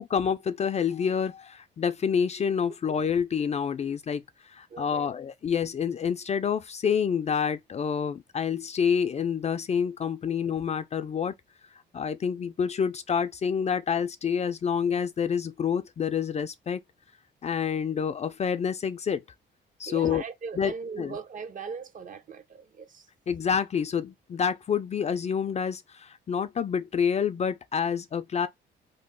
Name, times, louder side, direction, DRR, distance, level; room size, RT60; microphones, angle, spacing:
voice 1, 0.1-11.3 11.9-16.8 17.4-19.2 19.8-20.2 20.6-21.2 23.3-28.5, left 7 dB, 35° left, 0.3 m, -28 dB
voice 2, 4.7-5.1 19.9-23.1, right 5 dB, 40° right, 0.6 m, -39 dB
3.0 x 2.0 x 3.6 m
cardioid pair, 90°, 20 cm